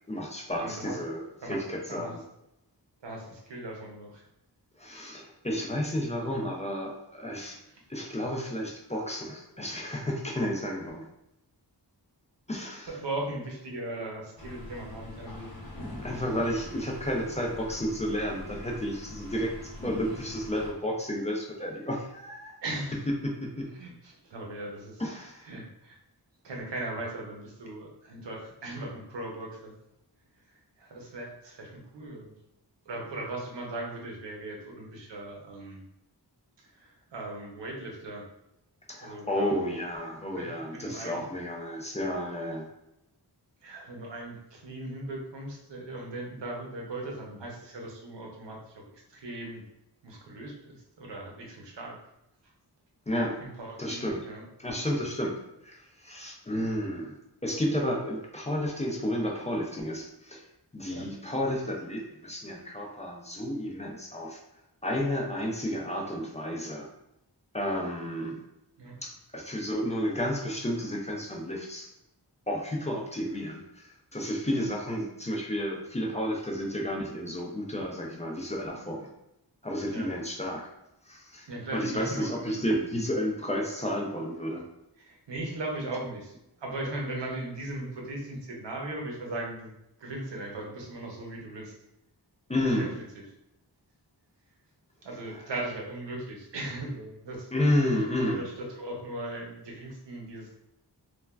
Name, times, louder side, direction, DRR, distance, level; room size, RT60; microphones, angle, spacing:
voice 1, 0.1-2.2 4.8-7.6 7.9-11.1 12.5-13.0 16.0-22.5 23.2-23.7 25.0-25.4 38.9-42.7 53.1-53.4 53.8-54.3 54.6-55.3 55.6-57.1 57.4-60.4 60.7-64.4 64.8-66.9 67.5-68.4 69.0-71.9 72.5-79.1 79.6-80.6 81.1-84.6 92.5-92.9 97.5-98.5, equal, 15° left, -1 dB, 0.4 m, -31 dB
voice 2, 0.6-1.0 1.4-1.6 1.9-2.2 3.0-4.2 12.9-15.6 16.1-16.2 22.6-23.0 23.7-25.0 25.4-26.0 26.4-29.7 30.8-32.3 32.9-35.8 36.7-38.3 39.0-39.7 40.3-41.2 43.6-49.6 50.0-52.0 53.4-54.4 60.9-61.1 68.8-69.0 74.5-74.6 79.9-80.1 81.5-82.6 85.0-89.7 90.0-91.7 92.6-93.0 95.0-97.5 98.1-100.6, right 2 dB, 85° right, -1 dB, 0.7 m, -38 dB
sound 1, 14.4-20.7, left 1 dB, 60° left, 0.8 m, -43 dB
3.2 x 2.1 x 2.2 m, 0.85 s
wide cardioid pair, 80°, 42 cm